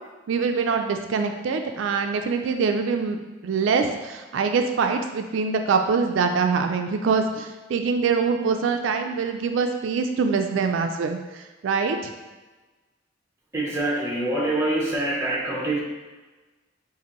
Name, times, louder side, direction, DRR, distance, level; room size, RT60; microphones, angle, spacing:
voice 1, 0.3-12.1, right 5 dB, 80° right, 5 dB, 0.3 m, -24 dB
voice 2, 13.5-15.8, right 1 dB, 15° right, -3 dB, 0.8 m, -25 dB
6.7 x 2.6 x 3.0 m, 1.2 s
head